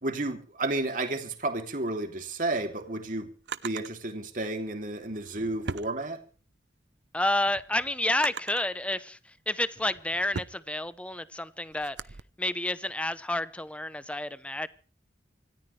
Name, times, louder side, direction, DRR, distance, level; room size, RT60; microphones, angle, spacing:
voice 1, 0.0-3.3 3.6-6.2, right 2 dB, 50° right, 2.9 m, -32 dB
Drawer open or close, 2.5-3.9 5.0-6.6 7.1-8.7 9.4-12.2, right 5 dB, 80° right, 0.8 m, -41 dB
voice 2, 7.1-9.2 9.5-12.0 12.4-14.7, left 1 dB, 5° left, 0.8 m, -30 dB
26.0 x 14.0 x 3.3 m
head